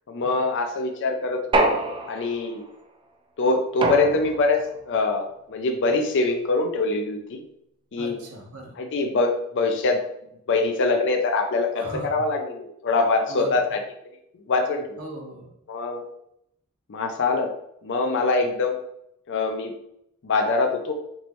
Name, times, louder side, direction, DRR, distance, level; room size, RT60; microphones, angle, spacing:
voice 1, 0.1-1.7 2.1-2.6 3.4-4.6 4.8-7.4 7.9-8.2 8.8-10.0 10.5-13.8 14.5-15.0 15.7-16.0 16.9-17.5 17.8-18.8 19.3-19.7 20.2-21.0, left 3 dB, 55° left, 3 dB, 0.5 m, -24 dB
sound 1, 1.5-2.5 3.8-4.6, right 2 dB, 20° right, 0.4 m, -24 dB
voice 2, 8.0-8.7 11.8-12.2 13.3-13.7 15.0-15.5, right 1 dB, 75° right, 0 dB, 1.1 m, -37 dB
4.5 x 3.1 x 3.0 m, 0.76 s
head